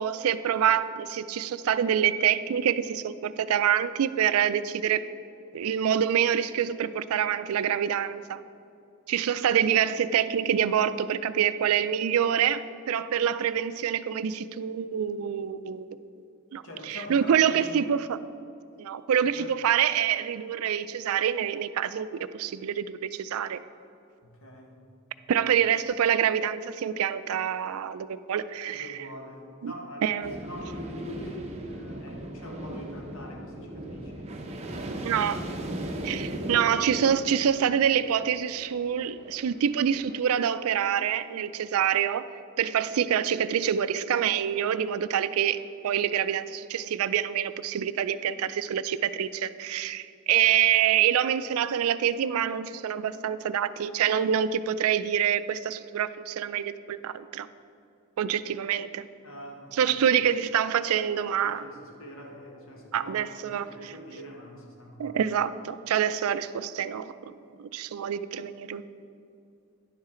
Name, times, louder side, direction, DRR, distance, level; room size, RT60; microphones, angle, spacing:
voice 1, 0.0-5.0 5.5-8.4 9.1-16.0 16.5-18.2 18.8-22.1 22.3-23.6 25.3-29.0 29.6-29.7 30.0-30.4 35.0-35.4 36.0-42.2 42.6-45.6 45.8-57.5 58.2-59.1 59.7-61.7 62.9-63.9 65.0-67.3 67.6-68.8, right 9 dB, 75° right, 14 dB, 0.3 m, -26 dB
voice 2, 16.6-17.9 19.3-19.5 24.2-24.7 25.4-25.5 28.7-35.3 35.8-36.6 59.2-60.0 61.4-65.2, left 1 dB, 60° left, 0 dB, 1.4 m, -44 dB
sound 1, 30.2-40.2, right 1 dB, 30° right, 0.7 m, -38 dB
10.5 x 7.3 x 3.7 m, 2.5 s
head